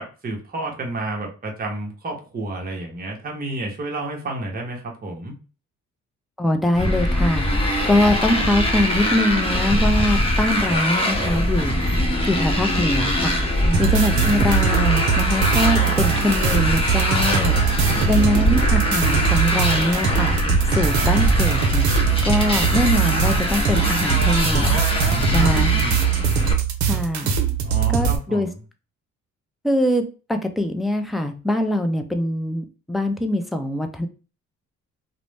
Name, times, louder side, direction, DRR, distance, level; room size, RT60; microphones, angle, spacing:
voice 1, 0.0-5.3 13.6-13.8 17.9-18.0 22.4-22.6 25.0-26.0 27.6-28.5, right 1 dB, 30° right, 0 dB, 0.9 m, -30 dB
voice 2, 6.4-7.5 7.8-11.7 12.3-13.4 13.8-17.5 18.1-20.3 20.7-21.9 22.3-24.8 25.3-25.7 26.9-27.4 27.9-28.5 29.6-34.1, left 1 dB, ahead, 6 dB, 0.3 m, -23 dB
Motorcycle, 6.8-26.5, left 1 dB, 20° left, 0.7 m, -22 dB
sound 1, 13.7-28.2, right 7 dB, 70° right, 0.6 m, -21 dB
2.5 x 2.0 x 3.2 m, 0.34 s
cardioid pair, 90°, 30 cm